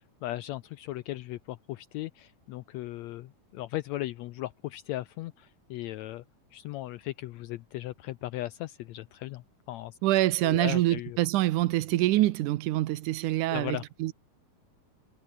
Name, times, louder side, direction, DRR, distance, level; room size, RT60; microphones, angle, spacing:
voice 1, 0.2-6.2 6.5-10.0 10.4-11.2 13.5-13.8, left 16 dB, 85° left, 1.6 m, -37 dB
voice 2, 10.0-14.1, right 16 dB, 80° right, 2.3 m, -25 dB
omnidirectional pair, 3.7 m